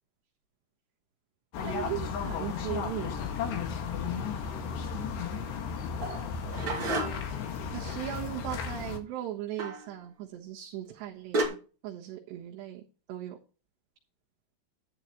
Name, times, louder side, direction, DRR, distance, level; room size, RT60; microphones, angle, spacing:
sound 1, 1.5-9.0, left 6 dB, 70° left, 3.9 m, -34 dB
voice 1, 1.6-3.1 7.7-11.6 11.8-12.8 13.1-13.4, right 13 dB, 75° right, -3 dB, 3.5 m, -38 dB
sound 2, 6.0-7.4 9.6-9.9 10.9-11.0 11.3-11.5, right 2 dB, 30° right, 2.7 m, -31 dB
11.5 x 11.0 x 3.0 m, 0.35 s
omnidirectional pair, 5.2 m